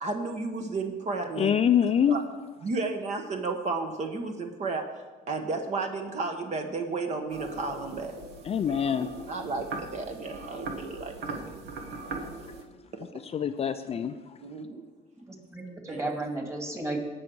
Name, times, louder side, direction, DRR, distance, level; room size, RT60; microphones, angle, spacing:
voice 1, 0.0-1.5 2.1-2.2 2.6-4.9 5.3-8.1 9.3-11.4 14.4-14.8 15.9-16.0, right 3 dB, 45° right, 4 dB, 1.2 m, -32 dB
voice 2, 1.4-2.2 8.5-9.1 13.3-14.4, left 8 dB, 35° left, 9 dB, 0.5 m, -25 dB
sound 1, 7.3-12.6, right 3 dB, 75° right, 1.4 m, -40 dB
voice 3, 15.2-17.0, right 2 dB, 15° right, 2 dB, 2.2 m, -34 dB
17.5 x 6.3 x 4.7 m, 1.3 s
cardioid pair, 110°, 17 cm